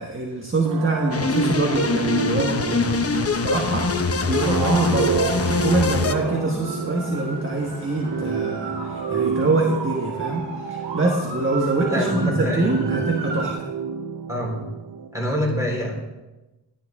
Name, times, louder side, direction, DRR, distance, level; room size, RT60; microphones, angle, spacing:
voice 1, 0.0-13.7, right 2 dB, 30° right, 1 dB, 1.4 m, -25 dB
sound 1, 0.6-15.2, right 7 dB, 55° right, 0.6 m, -30 dB
sound 2, 1.1-6.1, left 4 dB, 35° left, 0.8 m, -23 dB
sound 3, 2.7-13.5, right 2 dB, 80° right, 2.3 m, -36 dB
voice 2, 11.9-12.8 14.3-14.6 15.1-15.9, equal, 5° right, -2 dB, 3.9 m, -26 dB
11.5 x 10.0 x 3.6 m, 1.1 s
cardioid pair, 60°, 43 cm